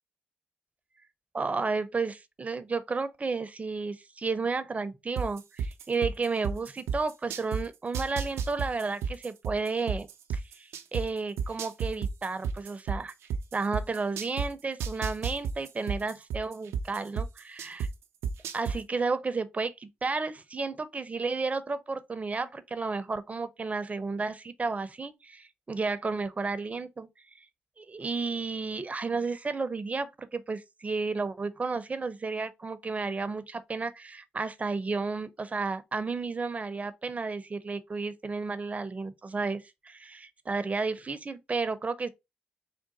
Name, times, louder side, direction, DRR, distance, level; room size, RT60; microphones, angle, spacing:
voice 1, 1.3-10.1 10.3-13.1 13.5-17.9 18.5-27.1 27.8-42.1, right 4 dB, 30° right, 0.6 m, -32 dB
sound 1, 5.2-7.6 7.9-11.0 11.4-14.5 14.8-17.9 18.2-18.8, right 6 dB, 80° right, 0.5 m, -31 dB
3.7 x 2.2 x 4.0 m
supercardioid pair, 50°, 5 cm